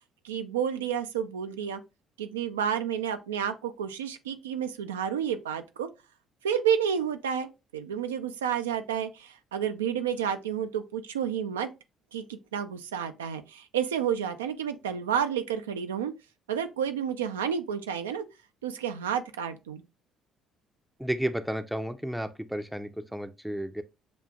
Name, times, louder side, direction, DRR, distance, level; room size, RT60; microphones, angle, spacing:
voice 1, 0.2-1.8 2.2-5.9 6.4-11.7 12.1-16.1 16.5-18.3 18.6-19.8, right 8 dB, 90° right, 0.3 m, -30 dB
voice 2, 21.0-23.8, right 1 dB, 5° right, 0.5 m, -32 dB
6.7 x 2.4 x 2.3 m
hypercardioid pair, 50°, 0 cm